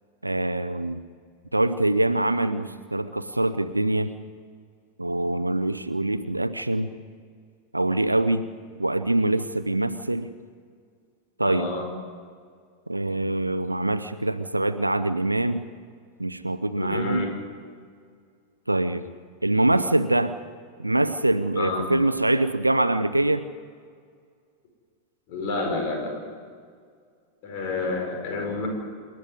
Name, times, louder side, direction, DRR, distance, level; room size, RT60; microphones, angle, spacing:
voice 1, 0.2-1.0 1.5-4.1 5.0-6.9 7.7-8.5 8.8-10.3 11.4-11.7 12.9-15.7 16.2-17.3 18.7-19.1 19.4-20.3 20.8-23.5, right 2 dB, 85° right, 12 dB, 0.7 m, -24 dB
voice 2, 11.4-11.9 16.8-17.3 21.6-21.8 25.3-26.3 27.4-28.7, left 3 dB, 45° left, 3 dB, 5.4 m, -29 dB
27.5 x 10.5 x 9.7 m, 2.1 s
figure-of-eight pair, 90°, 0 cm